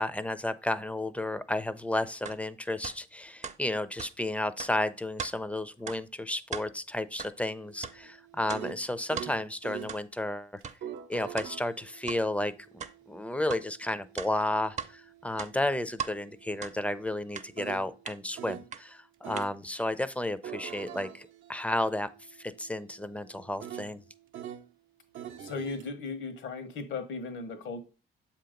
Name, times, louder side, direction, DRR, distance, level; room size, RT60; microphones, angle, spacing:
voice 1, 0.0-10.5 11.1-12.8 13.1-22.1 22.4-24.0, left 1 dB, 5° left, 14 dB, 0.5 m, -32 dB
sound 1, 2.2-2.4 2.8-3.0 3.4-3.6 4.0-4.1 4.6-4.7 5.2-5.3 5.9-6.0 6.4-6.7 7.2-7.3 7.8-8.0 8.5-8.6 9.2-9.3 9.9-10.0 10.6-10.8 11.4-11.5 12.1-12.2 12.8-12.9 13.5-13.6 14.2-14.9 15.3-16.1 16.6-16.8 17.3-17.5 18.1-18.2 18.7-18.8 19.4-19.5, right 7 dB, 35° right, 0.6 m, -38 dB
sound 2, 7.6-10.0 10.6-18.7 19.2-19.6 20.2-24.7 25.1-25.9, right 10 dB, 80° right, 0.6 m, -45 dB
voice 2, 25.4-27.8, left 4 dB, 75° left, 8 dB, 1.3 m, -36 dB
7.2 x 2.9 x 5.0 m, 0.33 s
cardioid pair, 90°, 20 cm